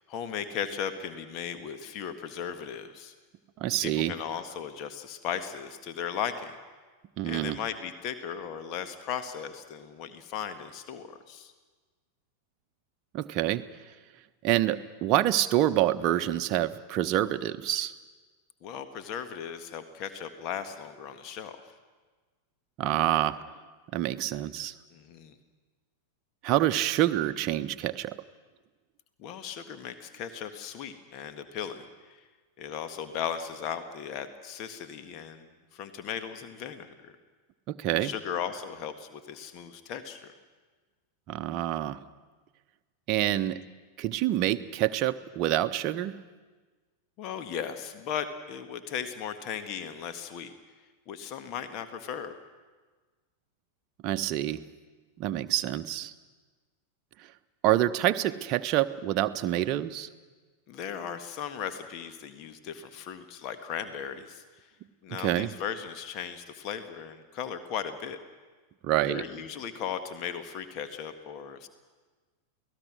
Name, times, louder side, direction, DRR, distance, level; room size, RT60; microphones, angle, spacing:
voice 1, 0.0-3.1 3.8-6.6 7.2-11.5 18.6-21.6 24.9-25.3 29.2-31.9 32.6-37.1 37.9-40.3 47.2-50.5 51.1-52.4 60.7-64.4 65.0-68.2 69.1-71.7, left 8 dB, 40° left, 9 dB, 1.7 m, -37 dB
voice 2, 3.6-4.1 7.2-7.6 13.1-13.6 14.4-17.9 22.8-23.4 23.9-24.7 26.4-28.1 37.7-38.1 41.3-42.0 43.1-43.6 44.0-46.2 54.0-54.6 55.2-56.1 57.6-60.1 65.1-65.5 68.8-69.2, right 13 dB, 40° right, 9 dB, 0.9 m, -27 dB
29.0 x 18.5 x 6.3 m, 1.4 s
figure-of-eight pair, 90°, 0 cm